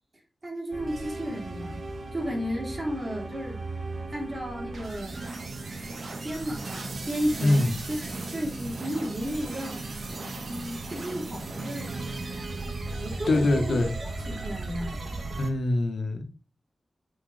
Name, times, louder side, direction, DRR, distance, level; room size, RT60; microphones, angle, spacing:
voice 1, 0.4-1.8 2.1-3.6 4.1-5.2 6.2-8.0 8.3-10.0 10.5-11.9 13.0-13.9 14.3-15.0, equal, 30° right, 3.2 m, -33 dB
sound 1, 0.7-15.5, right 2 dB, 70° right, 1.8 m, -36 dB
voice 2, 7.4-7.8 13.3-13.9 15.4-16.2, left 2 dB, 75° left, 1.7 m, -23 dB
6.4 x 5.1 x 5.1 m
wide cardioid pair, 130°, 0 cm